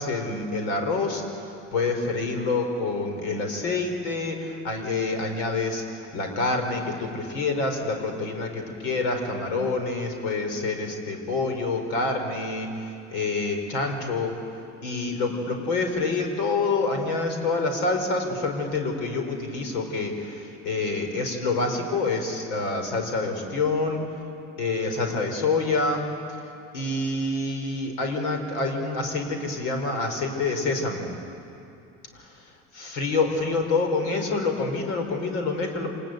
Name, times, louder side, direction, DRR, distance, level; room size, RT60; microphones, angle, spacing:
voice 1, 0.0-14.4 14.8-24.0 24.6-26.1 26.7-31.1 32.1-32.3 32.8-35.9, left 3 dB, 80° left, 5 dB, 4.6 m, -27 dB
26.5 x 19.5 x 9.1 m, 2.6 s
supercardioid pair, 85°, 35 cm